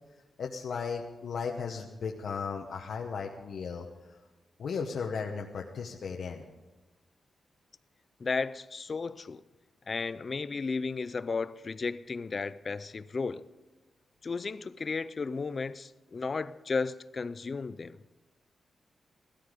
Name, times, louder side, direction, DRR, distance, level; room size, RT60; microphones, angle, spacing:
voice 1, 0.4-4.2 4.6-6.4, left 5 dB, 60° left, 1.0 m, -36 dB
voice 2, 8.2-9.4 9.9-13.4 14.2-18.0, left 4 dB, 30° left, 0.4 m, -34 dB
17.0 x 13.5 x 5.0 m
wide cardioid pair, 170°, 0 cm